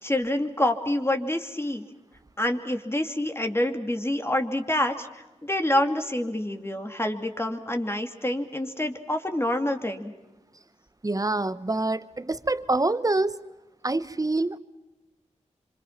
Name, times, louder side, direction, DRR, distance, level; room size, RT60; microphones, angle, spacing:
voice 1, 0.0-1.8 2.4-10.1, left 1 dB, 20° left, 5 dB, 2.6 m, -27 dB
voice 2, 11.0-13.4 13.8-14.6, right 2 dB, 30° right, 15 dB, 1.0 m, -26 dB
26.0 x 25.5 x 5.9 m, 1.1 s
cardioid pair, 45°, 12 cm